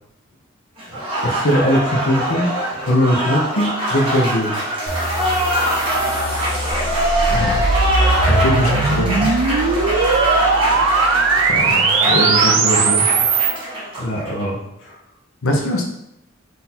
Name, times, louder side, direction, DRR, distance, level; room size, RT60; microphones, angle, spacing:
Applause, 0.8-14.4, right 1 dB, 25° right, 1.3 m, -22 dB
voice 1, 1.2-2.5 2.8-4.6 14.0-15.0, equal, 60° left, -1 dB, 0.6 m, -20 dB
sound 1, 4.9-12.0, right 1 dB, 25° left, 1.1 m, -28 dB
sound 2, 6.8-13.6, right 4 dB, 75° right, 0.5 m, -19 dB
voice 2, 7.3-7.6 8.3-9.3 11.5-13.1 15.4-15.8, equal, 90° left, 1 dB, 0.8 m, -22 dB
3.9 x 2.6 x 4.2 m, 0.80 s
head